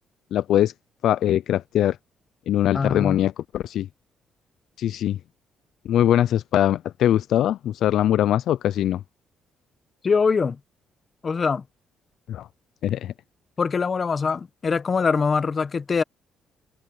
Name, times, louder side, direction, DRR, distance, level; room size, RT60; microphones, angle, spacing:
voice 1, 0.3-0.7 1.0-2.0 2.5-3.9 4.8-5.2 5.9-9.0 12.3-12.5 12.8-13.1, left 11 dB, 75° left, 0.3 m, -22 dB
voice 2, 2.7-3.2 10.0-10.6 11.2-11.6 13.6-16.0, left 5 dB, 40° left, 1.1 m, -23 dB
cardioid pair, 90°, 0 cm